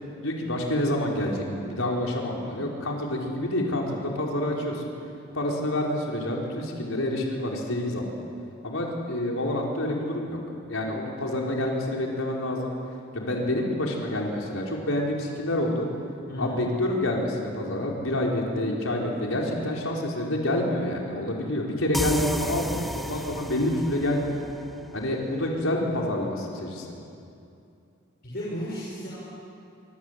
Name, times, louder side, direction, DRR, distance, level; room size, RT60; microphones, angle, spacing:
voice 1, 0.2-4.9 5.3-8.1 8.6-10.4 10.7-12.8 13.1-15.9 16.4-24.4 24.9-26.9, left 1 dB, 85° left, -1 dB, 4.8 m, -28 dB
voice 2, 16.3-16.6 28.2-29.2, equal, 50° left, -6 dB, 5.7 m, -33 dB
sound 1, 21.9-25.5, equal, ahead, 0.9 m, -34 dB
26.0 x 25.5 x 8.4 m, 2.6 s
head